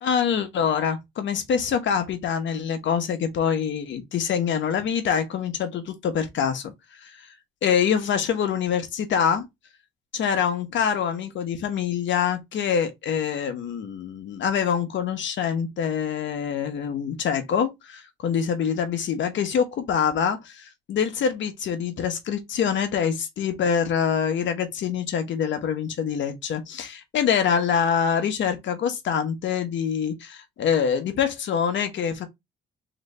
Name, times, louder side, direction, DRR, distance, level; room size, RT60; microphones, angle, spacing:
voice 1, 0.0-6.7 7.0-7.1 7.6-9.5 10.1-32.3, left 7 dB, 70° left, 1.1 m, -25 dB
3.2 x 3.2 x 4.1 m
cardioid pair, 90°, 20 cm